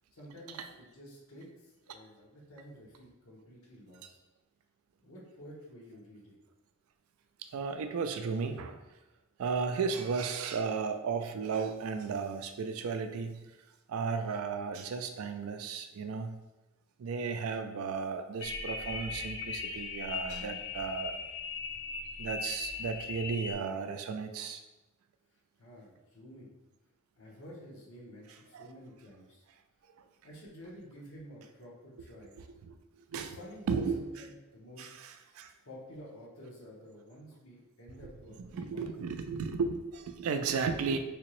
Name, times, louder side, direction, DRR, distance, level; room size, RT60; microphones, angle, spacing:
voice 1, 0.1-4.2 5.0-6.3 25.6-26.5 27.2-29.4 30.2-32.3 33.1-34.9 35.6-38.9, equal, 75° left, -4 dB, 1.0 m, -51 dB
voice 2, 7.4-8.8 9.4-13.5 13.9-16.4 17.0-21.2 22.2-24.6 28.5-28.7 30.0-30.1 32.6-33.4 33.7-34.0 34.8-35.5 38.0-38.1 38.4-41.0, right 5 dB, 75° right, 8 dB, 0.3 m, -34 dB
sound 1, 18.4-23.5, left 5 dB, 55° left, 0.3 m, -39 dB
3.4 x 2.9 x 3.0 m, 1.1 s
head